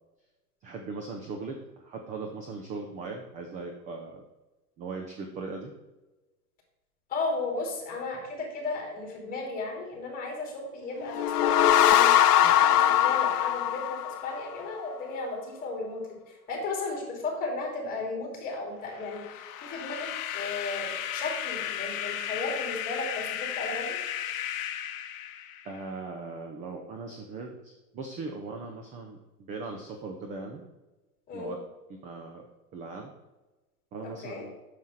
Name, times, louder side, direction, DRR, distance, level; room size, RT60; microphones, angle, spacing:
voice 1, 0.6-4.2 4.8-5.7 25.6-30.7 31.3-31.6 31.9-32.5 32.7-33.1 33.9-34.5, right 3 dB, 15° right, 3 dB, 0.5 m, -39 dB
voice 2, 7.1-24.0 31.3-31.5 34.2-34.4, left 3 dB, 20° left, 0 dB, 3.0 m, -35 dB
sound 1, 11.0-14.6, left 11 dB, 85° left, 0.6 m, -21 dB
sound 2, 18.9-25.9, left 10 dB, 60° left, 0.8 m, -35 dB
7.1 x 6.7 x 4.2 m, 1.1 s
hypercardioid pair, 135°, 45 cm